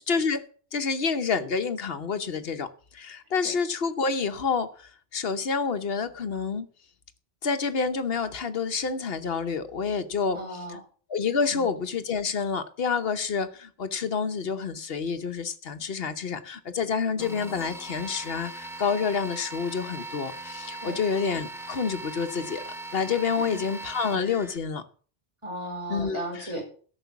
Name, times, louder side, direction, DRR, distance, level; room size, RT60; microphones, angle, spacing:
voice 1, 0.1-2.7 2.9-4.7 5.1-6.7 7.4-10.4 11.1-22.6 22.9-24.8 25.9-26.2, left 5 dB, 70° left, 1.2 m, -28 dB
voice 2, 10.3-10.8 11.5-11.7 20.8-21.0 23.4-23.6 25.4-26.7, right 1 dB, 25° right, 5.8 m, -35 dB
sound 1, 17.2-24.6, right 2 dB, 5° right, 0.9 m, -39 dB
13.5 x 6.1 x 7.1 m
omnidirectional pair, 1.1 m